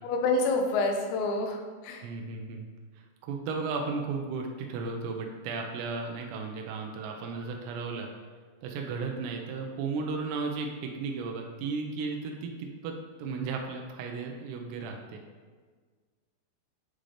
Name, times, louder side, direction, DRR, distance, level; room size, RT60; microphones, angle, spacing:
voice 1, 0.0-2.1, left 3 dB, 85° left, 3 dB, 2.9 m, -28 dB
voice 2, 2.0-2.7 3.2-8.1 8.6-15.2, right 4 dB, 90° right, 2 dB, 2.9 m, -35 dB
10.0 x 3.8 x 3.3 m, 1.5 s
omnidirectional pair, 4.9 m